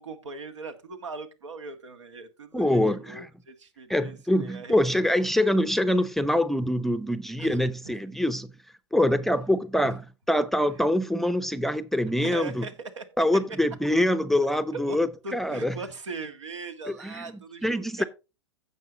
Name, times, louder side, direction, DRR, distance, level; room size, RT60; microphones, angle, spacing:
voice 1, 0.0-4.8 7.4-7.6 7.8-7.9 9.8-9.9 12.2-13.0 13.8-13.9 14.7-15.0 15.2-18.0, right 3 dB, 85° right, 1.6 m, -40 dB
voice 2, 2.5-3.3 3.9-8.5 8.9-10.0 10.3-12.7 13.2-15.8 16.9-18.0, left 1 dB, ahead, 0.6 m, -25 dB
15.5 x 5.5 x 2.9 m
hypercardioid pair, 105°, 15 cm